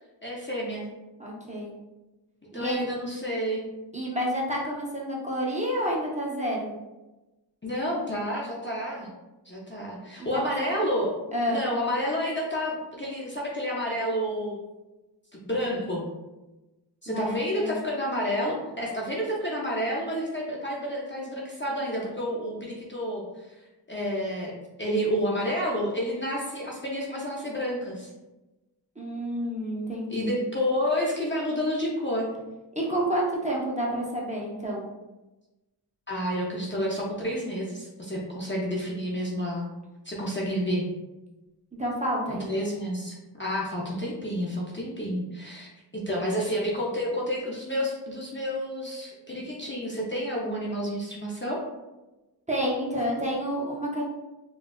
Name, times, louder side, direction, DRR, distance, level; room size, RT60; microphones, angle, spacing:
voice 1, 0.2-0.8 2.5-3.6 7.6-9.1 9.5-11.1 11.5-14.6 15.3-16.0 17.0-23.6 23.9-28.1 30.1-32.3 36.1-39.7 40.0-40.9 42.3-51.6, equal, 25° left, -4 dB, 0.6 m, -30 dB
voice 2, 1.2-1.7 2.5-2.9 3.9-6.7 10.6-10.7 11.3-11.6 17.1-17.8 29.0-30.3 32.8-34.8 41.8-42.6 52.5-54.0, equal, 15° right, -4 dB, 0.7 m, -29 dB
3.8 x 2.4 x 2.3 m, 1.1 s
wide cardioid pair, 50°, 42 cm